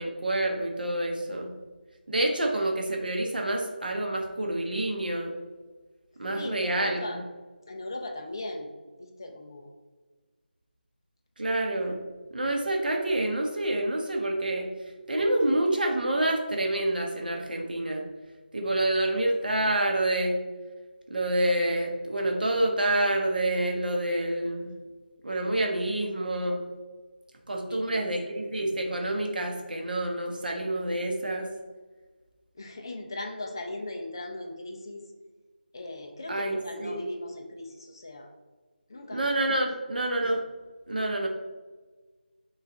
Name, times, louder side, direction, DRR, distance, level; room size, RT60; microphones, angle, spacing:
voice 1, 0.0-1.5 2.1-5.3 6.2-7.2 11.4-12.0 12.3-14.7 15.1-18.0 18.5-20.4 21.1-24.7 25.2-26.6 27.5-31.5 36.3-37.0 39.1-40.4 40.9-41.3, right 1 dB, 55° right, 1 dB, 0.8 m, -27 dB
voice 2, 6.3-7.2 7.7-8.7 9.0-9.7 27.6-28.1 32.6-35.0 35.7-38.3 38.9-39.2, left 2 dB, 25° left, 2 dB, 0.4 m, -38 dB
5.8 x 2.4 x 3.7 m, 1.3 s
figure-of-eight pair, 175°, 6 cm